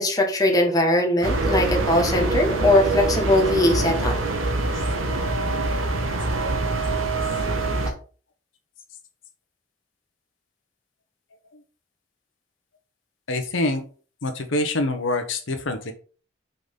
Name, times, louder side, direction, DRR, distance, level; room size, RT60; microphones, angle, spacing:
voice 1, 0.0-4.1, left 1 dB, 20° left, 2 dB, 1.2 m, -20 dB
sound 1, 1.2-7.9, right 2 dB, 80° right, 1.1 m, -24 dB
voice 2, 13.3-13.8 14.2-15.9, left 2 dB, 70° left, 6 dB, 0.9 m, -25 dB
5.9 x 3.9 x 5.2 m, 0.39 s
head